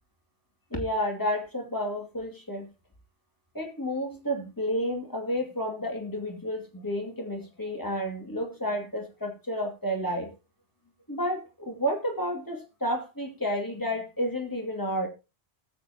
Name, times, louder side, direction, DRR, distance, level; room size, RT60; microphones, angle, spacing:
voice 1, 0.7-2.7 3.5-10.3 11.1-15.1, equal, 20° left, 1 dB, 2.4 m, -31 dB
19.0 x 7.7 x 2.8 m, 0.28 s
omnidirectional pair, 1.1 m